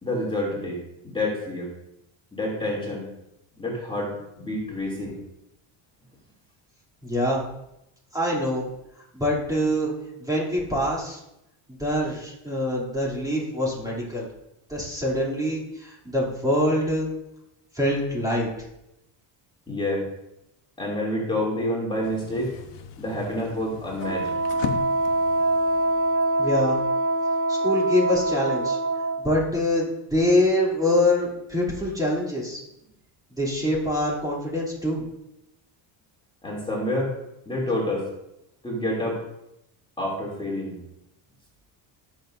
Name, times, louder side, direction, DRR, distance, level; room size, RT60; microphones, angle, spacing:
voice 1, 0.0-1.7 2.3-3.1 3.6-5.2 19.7-20.0 20.8-22.5 23.0-24.3 36.4-37.1 37.4-38.1 38.6-39.2 40.0-40.8, left 1 dB, 10° left, -4 dB, 2.9 m, -28 dB
voice 2, 7.0-7.4 8.1-8.7 9.1-9.9 10.2-11.2 11.8-14.3 14.7-17.1 17.7-18.5 26.4-26.8 27.5-28.8 29.2-32.6 33.4-35.1, left 1 dB, 10° right, -5 dB, 2.9 m, -24 dB
sound 1, 22.0-27.1, left 9 dB, 65° left, 1.2 m, -39 dB
Wind instrument woodwind instrument, 24.0-29.2, right 2 dB, 25° right, 1.3 m, -24 dB
18.5 x 6.9 x 2.7 m, 0.86 s
cardioid pair, 130°, 47 cm